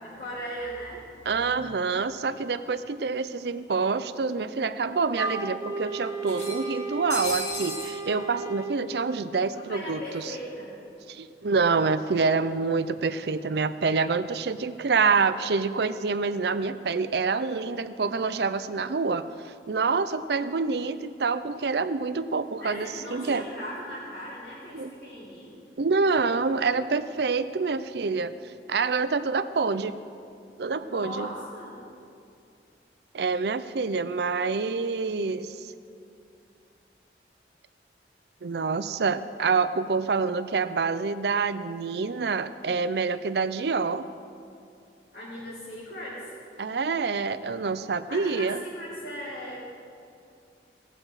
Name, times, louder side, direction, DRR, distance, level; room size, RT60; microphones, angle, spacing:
voice 1, 0.0-1.5 9.5-10.8 22.6-25.5 30.7-31.8 45.1-46.2 48.1-49.7, equal, 60° left, -11 dB, 3.6 m, -38 dB
voice 2, 1.3-10.3 11.1-23.4 24.7-24.9 25.8-28.3 28.7-29.9 30.6-31.3 33.1-35.7 38.4-44.1 46.6-48.6, right 4 dB, 65° right, 12 dB, 0.5 m, -27 dB
sound 1, 2.8-2.9 3.2-3.3 4.4-4.5 4.8-4.9 6.2-8.0, left 1 dB, 40° left, 2.6 m, -35 dB
Wind instrument woodwind instrument, 5.2-8.8, right 4 dB, 20° right, 0.5 m, -34 dB
19.5 x 7.7 x 4.9 m, 2.5 s
head